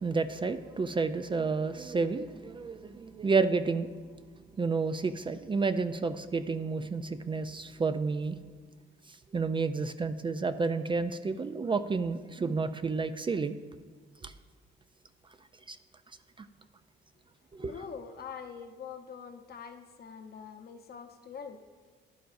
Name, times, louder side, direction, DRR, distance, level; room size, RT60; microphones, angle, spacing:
voice 1, 0.0-3.9 4.6-8.4 9.3-13.6 14.2-14.3 15.7-15.8 17.5-17.7, right 4 dB, 25° right, 10 dB, 0.3 m, -30 dB
voice 2, 17.6-21.7, left 6 dB, 50° left, 6 dB, 0.8 m, -44 dB
11.5 x 10.0 x 2.6 m, 1.5 s
cardioid pair, 90°, 20 cm